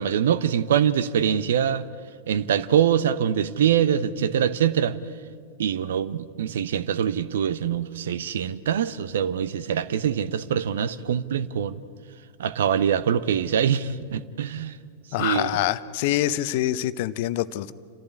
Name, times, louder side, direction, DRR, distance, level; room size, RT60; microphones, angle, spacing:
voice 1, 0.0-1.8 2.3-4.9 5.6-11.8 12.4-14.7 15.2-15.5, right 9 dB, 60° right, 0.9 m, -24 dB
voice 2, 15.1-17.7, left 14 dB, 50° left, 0.8 m, -25 dB
28.5 x 15.0 x 9.6 m
figure-of-eight pair, 90°, 0 cm